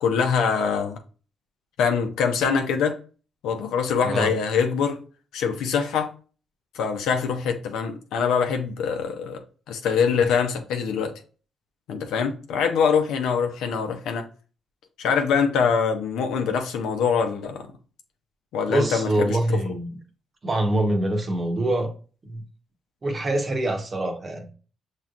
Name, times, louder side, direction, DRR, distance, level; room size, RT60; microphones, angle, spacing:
voice 1, 0.0-1.0 1.8-3.0 3.4-5.0 5.3-6.1 6.7-9.4 9.7-11.1 11.9-14.3 15.0-17.7 18.5-19.6, left 6 dB, 85° left, 0.7 m, -24 dB
voice 2, 18.7-19.9 20.4-21.9 22.2-22.4 23.0-24.5, right 1 dB, 35° right, 1.0 m, -24 dB
5.9 x 3.1 x 2.5 m
cardioid pair, 90°, 0 cm